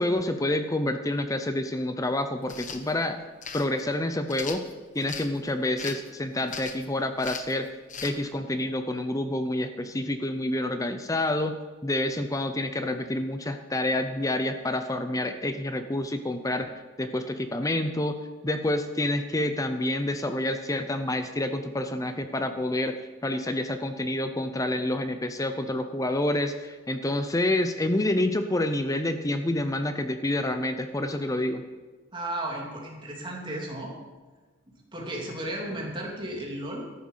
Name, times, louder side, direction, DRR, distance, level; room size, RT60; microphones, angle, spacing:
voice 1, 0.0-3.2 3.5-4.6 4.9-7.7 8.0-11.6 11.8-18.2 18.4-22.9 23.2-31.6, left 1 dB, 15° left, 8 dB, 0.6 m, -28 dB
sound 1, 2.4-2.8 3.4-3.7 4.3-5.3 5.8-6.1 6.5-6.9 7.2-7.5 7.9-8.1, left 6 dB, 35° left, 1.1 m, -38 dB
voice 2, 32.1-33.9 34.9-37.0, right 1 dB, 25° right, -1 dB, 2.9 m, -34 dB
14.0 x 11.0 x 5.7 m, 1.3 s
head